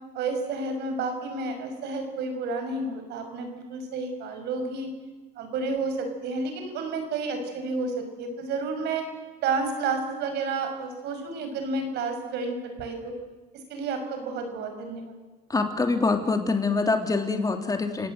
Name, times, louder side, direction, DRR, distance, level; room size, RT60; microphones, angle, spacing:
voice 1, 0.1-4.9 5.4-9.0 9.4-13.1 13.7-15.2, right 3 dB, 80° right, 6 dB, 6.0 m, -31 dB
voice 2, 15.5-18.1, left 3 dB, 20° left, 6 dB, 3.1 m, -25 dB
29.0 x 18.5 x 7.9 m, 1.3 s
cardioid pair, 110°, 17 cm